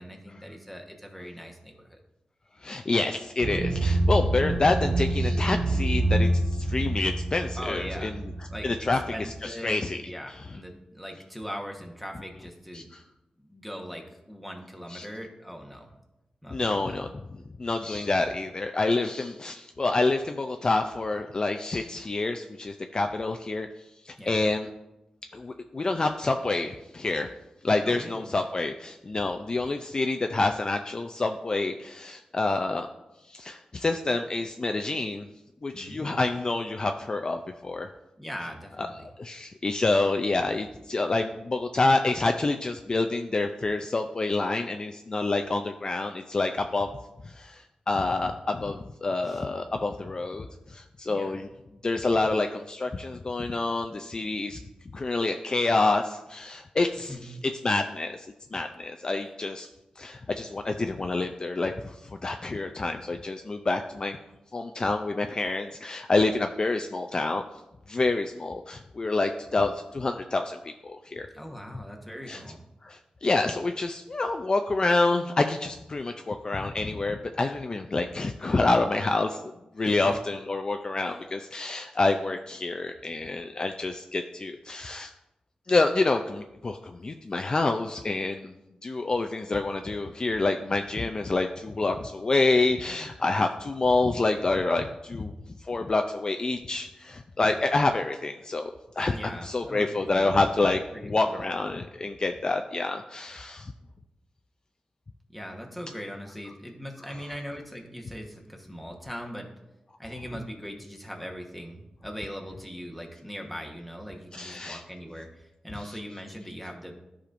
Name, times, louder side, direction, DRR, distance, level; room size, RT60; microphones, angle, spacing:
voice 1, 0.0-2.0 7.6-8.2 8.5-12.9 13.4-15.9 16.4-16.9 24.2-24.4 27.8-28.3 35.7-36.2 38.2-38.9 49.2-49.4 51.1-51.4 57.1-57.3 71.3-72.6 79.8-80.2 81.0-81.2 99.1-100.3 100.9-101.4 105.3-109.5 110.0-116.9, equal, ahead, 1 dB, 1.1 m, -40 dB
voice 2, 2.6-8.2 8.6-10.0 10.3-10.4 12.7-12.8 14.9-15.1 16.5-17.1 17.6-23.7 24.0-24.7 25.3-27.3 27.6-32.9 33.3-35.3 35.6-37.9 38.8-46.9 47.2-51.5 51.8-54.6 54.9-57.3 57.6-59.7 60.0-64.2 64.5-67.4 67.9-71.3 72.3-72.4 72.8-85.1 85.7-88.5 88.8-95.3 95.7-103.7 114.3-114.8, left 3 dB, 35° left, 5 dB, 0.4 m, -27 dB
sound 1, 3.4-9.4, right 1 dB, 45° right, 0.6 m, -26 dB
13.5 x 5.0 x 2.5 m, 0.93 s
wide cardioid pair, 120°, 2 cm